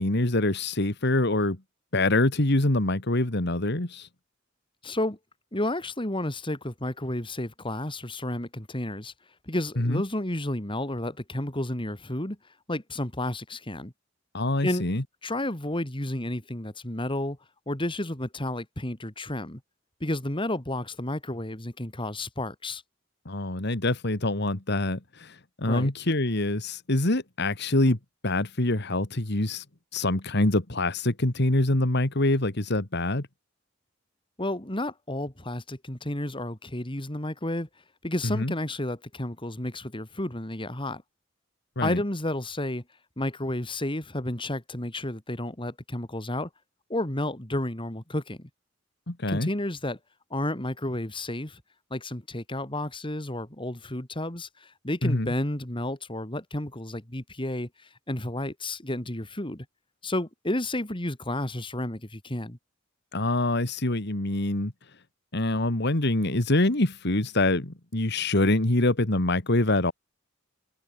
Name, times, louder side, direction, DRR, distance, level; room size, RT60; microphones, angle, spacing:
voice 1, 0.0-1.6 1.9-4.1 9.8-10.0 14.3-15.0 23.3-28.0 28.2-29.6 29.9-33.3 38.2-38.5 41.8-42.0 49.1-49.5 55.0-55.3 63.1-64.7 65.3-69.9, left 2 dB, 60° left, 2.2 m, -25 dB
voice 2, 4.8-5.2 5.5-9.1 9.5-12.4 12.7-13.9 14.6-14.8 15.2-17.4 17.7-19.6 20.0-22.8 25.7-25.9 34.4-37.7 38.0-41.0 41.8-42.8 43.2-46.5 46.9-48.5 49.3-50.0 50.3-51.6 51.9-57.7 58.1-59.6 60.0-62.6, left 1 dB, 25° left, 3.3 m, -31 dB
head